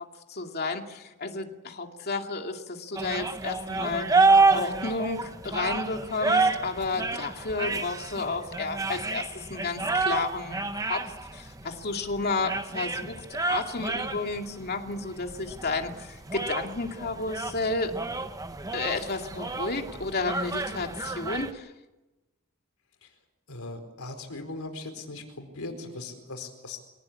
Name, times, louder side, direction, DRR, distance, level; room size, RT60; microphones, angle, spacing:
voice 1, 0.3-4.1 4.5-10.6 10.9-11.0 11.3-18.0 18.7-21.7, left 3 dB, 50° left, 3 dB, 2.5 m, -32 dB
sound 1, 3.0-21.5, right 3 dB, 15° right, 1.1 m, -29 dB
voice 2, 23.5-26.8, left 2 dB, 80° left, 5 dB, 4.4 m, -39 dB
24.5 x 18.0 x 8.6 m, 1.0 s
head